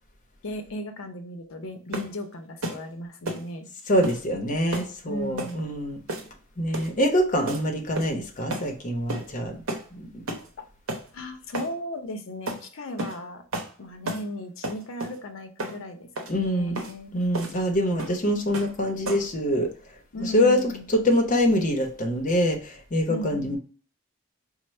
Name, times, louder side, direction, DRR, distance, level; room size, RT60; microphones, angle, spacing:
voice 1, 0.4-3.7 5.1-5.6 10.6-10.7 11.1-13.4 13.8-17.1 20.1-20.8 23.1-23.6, left 1 dB, 75° left, 6 dB, 0.6 m, -36 dB
sound 1, 1.9-2.2 2.6-2.8 3.3-3.5 4.0-4.2 4.7-4.9 5.4-5.6 6.1-6.4 6.7-7.0 7.5-7.6 8.0-8.2 8.5-8.7 9.1-9.3 9.7-9.9 10.3-10.5 10.9-11.1 11.5-11.7 12.5-12.6 13.0-13.2 13.5-13.7 14.1-14.3 14.6-15.2 15.6-15.8 16.2-16.3 16.8-16.9 17.3-17.6 18.0-18.2 18.5-18.8 19.1-19.3, right 1 dB, 80° right, 0.7 m, -32 dB
voice 2, 3.9-6.0 6.6-9.6 9.9-10.2 16.3-16.8 17.1-19.7 20.2-23.6, equal, 40° left, 3 dB, 0.7 m, -25 dB
4.3 x 2.0 x 3.1 m, 0.41 s
head